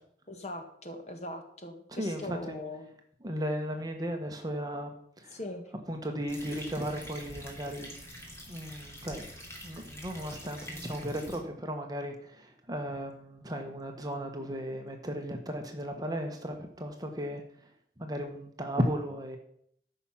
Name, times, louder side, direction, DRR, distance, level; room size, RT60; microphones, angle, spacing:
voice 1, 0.3-2.9 5.3-5.6, left 1 dB, 40° left, 5 dB, 1.7 m, -40 dB
voice 2, 1.9-2.6 3.2-5.4 5.9-7.9 8.5-9.3 9.6-17.7 18.0-19.4, equal, 20° right, 4 dB, 1.2 m, -35 dB
sound 1, 6.3-11.4, equal, 15° left, 2.4 m, -46 dB
13.5 x 5.9 x 5.7 m, 0.66 s
head